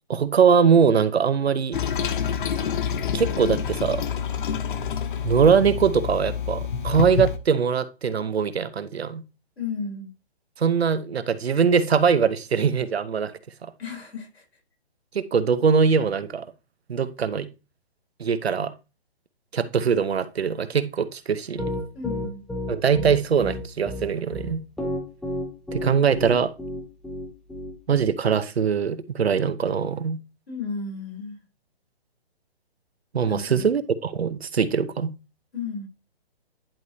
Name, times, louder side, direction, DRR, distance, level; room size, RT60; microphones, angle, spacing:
voice 1, 0.1-1.8 3.1-4.0 5.2-9.2 10.6-13.3 15.1-16.4 16.9-17.5 18.2-18.7 19.5-21.7 22.7-24.6 25.7-26.5 27.9-30.2 33.1-35.1, right 6 dB, 85° right, 0.9 m, -22 dB
Toilet flush, 1.7-7.4, left 7 dB, 55° left, 0.9 m, -27 dB
voice 2, 9.6-10.1 13.8-14.4 21.9-22.4 30.5-31.4 33.3-33.7 35.5-35.9, left 5 dB, 85° left, 3.7 m, -33 dB
Piano, 21.6-28.0, left 1 dB, ahead, 0.5 m, -31 dB
10.5 x 4.6 x 2.8 m
hypercardioid pair, 150°, 31 cm